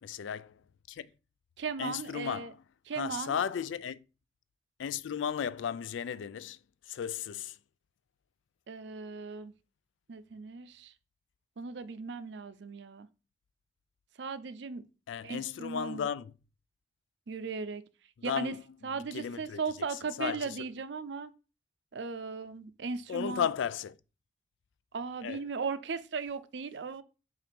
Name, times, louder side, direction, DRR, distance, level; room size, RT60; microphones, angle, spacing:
voice 1, 0.0-0.6 0.9-1.1 1.8-2.6 3.0-4.0 4.8-6.6 6.9-7.6 15.1-16.3 18.3-19.6 20.2-20.6 23.1-24.0 25.2-25.4, left 8 dB, 85° left, 0.3 m, -35 dB
voice 2, 1.6-2.5 2.9-3.4 8.7-9.5 10.1-10.9 11.6-13.1 14.2-14.8 15.2-16.0 17.3-17.8 18.2-18.6 18.8-21.3 21.9-23.5 24.9-27.0, right 5 dB, 70° right, 0.5 m, -37 dB
7.4 x 2.6 x 5.1 m
head